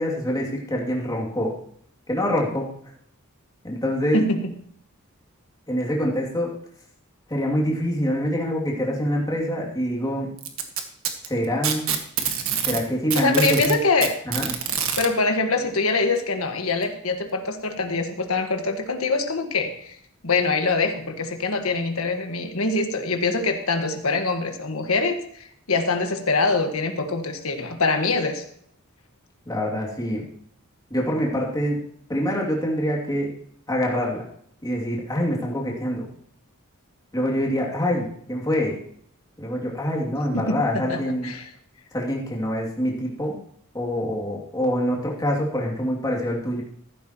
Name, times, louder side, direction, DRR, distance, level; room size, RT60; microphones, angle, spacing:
voice 1, 0.0-1.5 2.1-2.7 3.6-4.2 5.7-6.5 7.3-10.3 11.3-12.0 12.7-13.8 14.2-14.5 29.4-30.2 30.9-31.8 32.1-33.3 33.7-34.2 34.6-36.1 37.1-38.8 39.4-41.3 41.9-43.3 43.7-46.6, equal, 15° left, -2 dB, 2.7 m, -25 dB
voice 2, 4.1-4.5 13.1-14.1 15.0-19.9 20.2-28.4 40.3-41.4, left 3 dB, 75° left, 6 dB, 1.6 m, -24 dB
Packing tape duct tape, 10.4-12.8 13.1-15.1 16.2-16.3 16.8-16.9 17.8-17.9, right 8 dB, 70° right, 1.6 m, -26 dB
14.5 x 12.0 x 3.0 m, 0.66 s
head